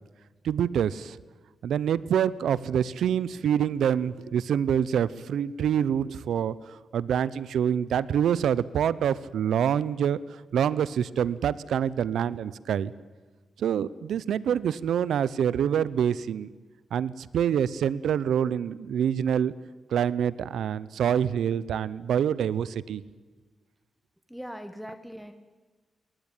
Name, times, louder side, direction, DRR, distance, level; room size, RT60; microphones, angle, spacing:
voice 1, 0.4-1.2 1.6-12.9 13.6-16.5 16.9-19.5 19.9-23.0, right 9 dB, 90° right, 19 dB, 0.7 m, -26 dB
voice 2, 24.3-25.3, equal, ahead, 9 dB, 1.4 m, -40 dB
22.0 x 19.0 x 9.1 m, 1.3 s
cardioid pair, 95°, 0 cm